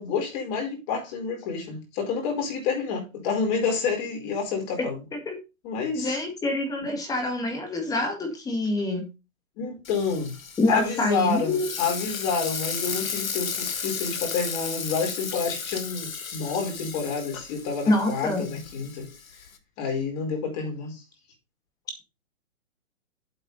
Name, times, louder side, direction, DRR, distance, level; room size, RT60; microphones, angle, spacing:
voice 1, 0.0-5.0 5.6-6.2 6.9-7.0 9.6-10.4 10.7-19.1 19.8-21.0, left 5 dB, 30° left, 4.6 m, -29 dB
voice 2, 5.9-9.1 10.6-11.7 17.9-18.4, left 1 dB, 10° left, 2.0 m, -26 dB
Frying (food), 9.8-19.6, left 6 dB, 85° left, 1.9 m, -34 dB
8.2 x 8.1 x 4.0 m
hypercardioid pair, 150°, 40 cm